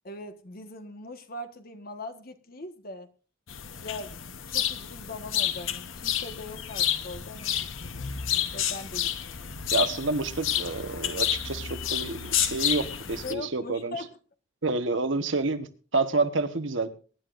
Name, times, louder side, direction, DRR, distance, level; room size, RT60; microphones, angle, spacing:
voice 1, 0.0-3.1 3.8-4.2 4.5-9.5 13.2-14.2, left 2 dB, 50° left, 8 dB, 1.4 m, -41 dB
sound 1, 3.5-13.3, left 10 dB, 75° left, 1.0 m, -30 dB
voice 2, 9.7-14.0 14.6-16.9, right 3 dB, 70° right, 9 dB, 1.2 m, -28 dB
23.0 x 11.0 x 2.6 m, 0.38 s
head